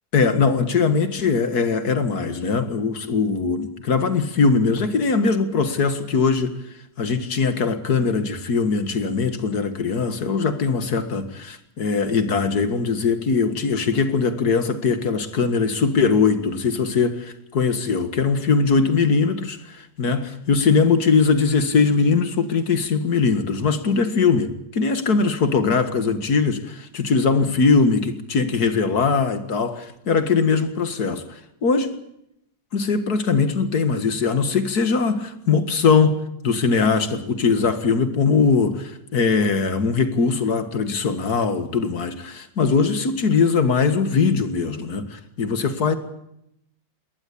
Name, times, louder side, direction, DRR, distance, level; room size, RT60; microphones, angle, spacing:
voice 1, 0.1-6.6 7.0-31.9 32.7-46.0, left 5 dB, 60° left, 2.3 m, -21 dB
21.5 x 18.5 x 8.6 m
omnidirectional pair, 1.9 m